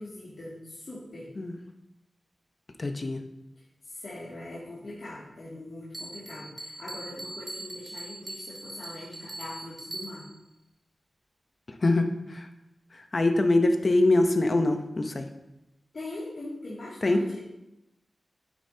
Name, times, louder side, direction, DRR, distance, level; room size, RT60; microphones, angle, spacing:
voice 1, 0.0-1.3 3.8-10.3 15.9-17.4, left 2 dB, 60° left, -9 dB, 2.3 m, -41 dB
voice 2, 2.8-3.2 11.8-12.4 13.1-15.2 17.0-17.2, left 2 dB, 40° left, 6 dB, 0.7 m, -23 dB
Bell, 5.9-10.5, right 1 dB, 20° right, 1.4 m, -41 dB
9.1 x 8.6 x 2.8 m, 0.90 s
wide cardioid pair, 110°, 0 cm